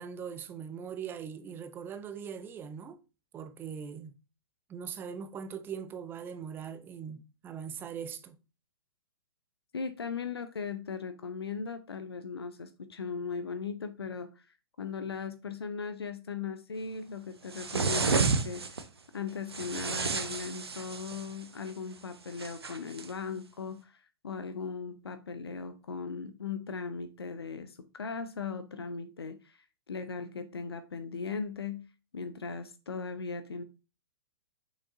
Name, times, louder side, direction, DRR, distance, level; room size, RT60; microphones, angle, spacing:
voice 1, 0.0-3.0 3.3-4.2 4.7-8.4, right 7 dB, 15° right, 0.6 m, -41 dB
voice 2, 9.7-14.5 14.8-18.6 19.1-31.9 32.1-33.6, left 5 dB, 70° left, 0.7 m, -38 dB
sound 1, 17.5-18.8 19.5-21.3 22.4-23.1, right 4 dB, 70° right, 0.9 m, -31 dB
6.2 x 6.2 x 2.7 m
figure-of-eight pair, 110°, 13 cm